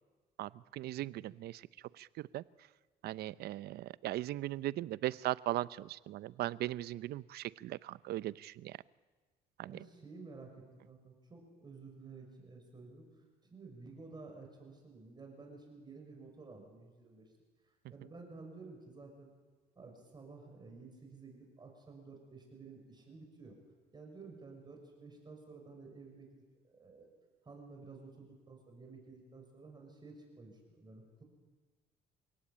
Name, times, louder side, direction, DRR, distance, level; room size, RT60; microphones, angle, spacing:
voice 1, 0.4-1.7 1.9-2.4 3.0-8.8 9.6-9.8, right 15 dB, 70° right, 18 dB, 0.7 m, -38 dB
voice 2, 9.7-13.1 13.5-17.3 17.9-19.3 19.7-23.6 23.9-26.4 26.6-27.1 27.4-31.2, right 4 dB, 25° right, 2 dB, 6.2 m, -52 dB
28.0 x 17.5 x 8.7 m, 1.3 s
cardioid pair, 110°, 17 cm